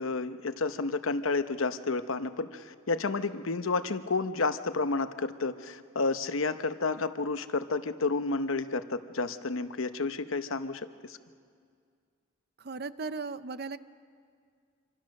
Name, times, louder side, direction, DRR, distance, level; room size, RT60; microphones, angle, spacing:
voice 1, 0.0-11.2, left 3 dB, 80° left, 11 dB, 0.9 m, -31 dB
voice 2, 12.6-13.8, right 4 dB, 50° right, 14 dB, 0.6 m, -37 dB
26.0 x 25.5 x 6.5 m, 2.2 s
head